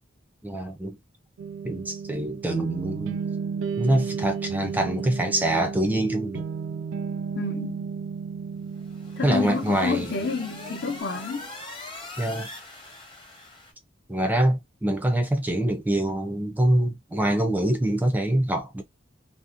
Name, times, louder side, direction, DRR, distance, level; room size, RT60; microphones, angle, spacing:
voice 1, 0.4-1.0 1.6-3.2 3.8-6.5 9.2-10.1 12.2-12.5 14.1-18.8, right 1 dB, 10° right, 0.4 m, -25 dB
sound 1, 1.4-11.0, right 6 dB, 80° right, 0.3 m, -33 dB
voice 2, 7.4-7.9 9.2-11.5, left 4 dB, 55° left, 0.6 m, -29 dB
sound 2, 8.7-13.7, left 2 dB, 25° left, 0.8 m, -42 dB
2.6 x 2.1 x 2.4 m
head